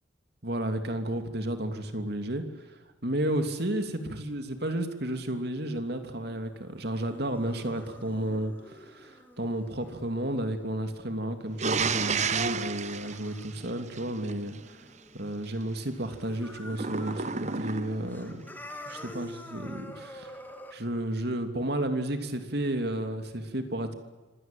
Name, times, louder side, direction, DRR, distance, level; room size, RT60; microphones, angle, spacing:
voice 1, 0.4-2.8 3.0-14.8 15.1-18.5 18.9-23.9, right 1 dB, 55° right, 7 dB, 3.0 m, -32 dB
sound 1, 6.0-15.7 15.9-17.6 17.9-20.7, left 1 dB, 10° left, 2.7 m, -48 dB
sound 2, 11.6-14.3 16.7-18.2, right 5 dB, 40° right, 1.0 m, -31 dB
25.5 x 18.0 x 9.2 m, 1.2 s
head